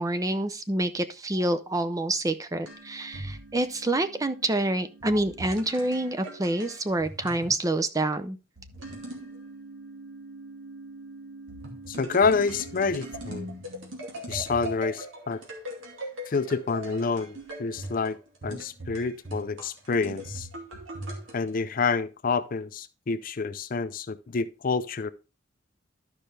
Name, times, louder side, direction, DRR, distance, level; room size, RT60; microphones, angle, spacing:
voice 1, 0.0-8.4, right 1 dB, 15° right, 0.5 m, -27 dB
sound 1, 2.7-7.6 8.6-21.5, right 1 dB, 90° right, 2.4 m, -41 dB
voice 2, 11.9-13.5 14.3-15.4 16.3-20.5 21.3-25.1, left 4 dB, 45° left, 0.5 m, -28 dB
12.0 x 5.5 x 3.3 m
head